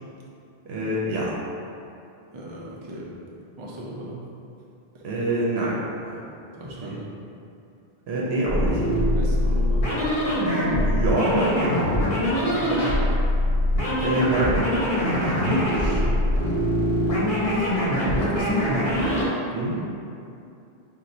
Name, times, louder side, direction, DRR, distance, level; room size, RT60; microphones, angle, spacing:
voice 1, 0.7-1.3 5.0-6.2 6.8-6.9 8.1-8.8 10.7-11.9 14.0-14.7 15.0-16.0 19.5-19.8, right 1 dB, 85° right, -5 dB, 0.8 m, -26 dB
voice 2, 2.3-3.1 3.6-4.2 6.5-7.0 9.2-9.9 12.1-13.2 16.2-17.7 18.2-18.9, equal, 45° right, -5 dB, 0.4 m, -36 dB
sound 1, 8.4-19.3, equal, 55° left, 0.9 m, -23 dB
2.6 x 2.3 x 4.1 m, 2.6 s
omnidirectional pair, 1.1 m